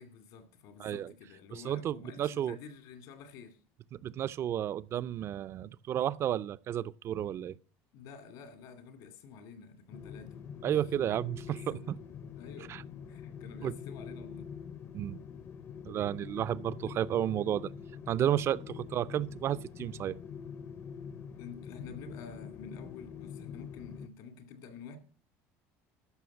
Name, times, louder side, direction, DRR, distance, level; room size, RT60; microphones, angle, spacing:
voice 1, 0.0-3.6 7.9-10.4 11.4-12.0 12.4-12.8 13.1-14.5 16.8-17.0 21.4-25.0, left 6 dB, 75° left, 2.3 m, -49 dB
voice 2, 0.8-1.1 1.5-2.6 4.0-7.6 10.6-12.0 12.7-12.8 13.6-13.7 14.9-15.2 15.9-17.7 18.1-20.2, right 11 dB, 40° right, 0.4 m, -32 dB
sound 1, 9.9-24.1, left 7 dB, 40° left, 0.7 m, -45 dB
13.0 x 5.7 x 7.0 m
cardioid pair, 130°, 7 cm